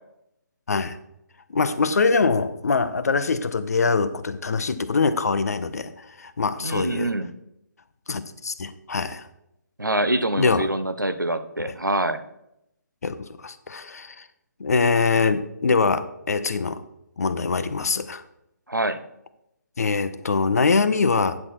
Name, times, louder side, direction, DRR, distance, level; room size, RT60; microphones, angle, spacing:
voice 1, 1.5-7.1 8.1-9.3 10.4-10.7 11.6-11.7 13.0-14.3 14.6-16.8 17.2-18.2 19.8-21.4, left 4 dB, 55° left, 13 dB, 0.7 m, -23 dB
voice 2, 6.6-7.3 9.8-12.2 18.7-19.0, right 1 dB, 90° right, 11 dB, 0.8 m, -25 dB
9.5 x 6.6 x 4.4 m, 0.82 s
figure-of-eight pair, 145°, 10 cm